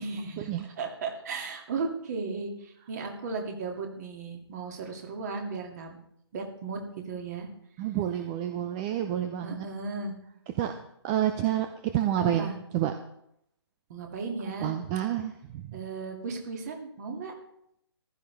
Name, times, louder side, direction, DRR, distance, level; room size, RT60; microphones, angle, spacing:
voice 1, 0.0-6.0 6.3-7.5 9.4-10.1 12.2-12.5 13.9-14.7 15.7-17.3, right 4 dB, 40° right, 2 dB, 2.5 m, -35 dB
voice 2, 7.8-9.6 10.6-10.7 11.0-12.9 14.6-15.7, right 11 dB, 20° right, 8 dB, 0.5 m, -29 dB
15.0 x 12.5 x 3.4 m, 0.75 s
figure-of-eight pair, 140°, 14 cm